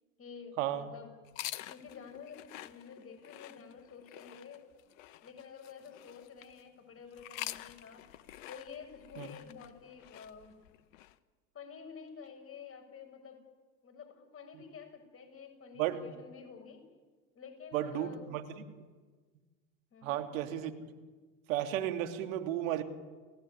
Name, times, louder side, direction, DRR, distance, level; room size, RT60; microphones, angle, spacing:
voice 1, 0.2-1.1 1.7-4.7 5.2-8.1 8.5-10.5 11.5-13.4 13.8-16.8 17.3-18.3 19.9-20.3, left 6 dB, 30° left, 4 dB, 6.7 m, -50 dB
sound 1, 1.2-6.6 7.1-11.1, left 14 dB, 65° left, 1.3 m, -47 dB
voice 2, 15.8-16.1 17.7-18.6 20.0-20.7 21.5-22.8, right 12 dB, 70° right, 7 dB, 2.7 m, -33 dB
30.0 x 16.5 x 9.7 m, 1.4 s
hypercardioid pair, 85°, 42 cm